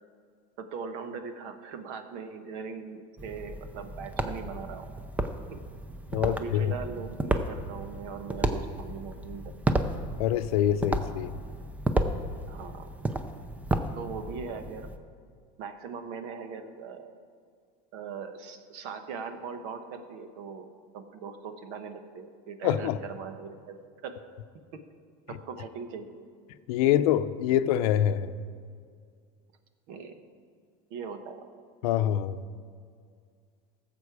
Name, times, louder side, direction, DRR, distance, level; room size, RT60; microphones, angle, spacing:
voice 1, 0.6-4.9 5.5-5.6 6.2-9.5 12.5-13.0 13.9-14.9 15.6-17.2 17.9-23.8 24.0-24.1 24.7-24.8 25.3-26.2 26.8-26.9 27.5-27.6 29.9-30.1 30.9-31.5, right 5 dB, 65° right, 8 dB, 1.2 m, -40 dB
sound 1, 3.2-15.0, right 1 dB, 10° right, 0.5 m, -32 dB
voice 2, 6.1-6.8 10.2-11.3 22.6-23.0 26.7-28.3 31.8-32.4, left 11 dB, 90° left, 11 dB, 0.6 m, -25 dB
17.5 x 7.5 x 4.8 m, 2.2 s
cardioid pair, 150°, 18 cm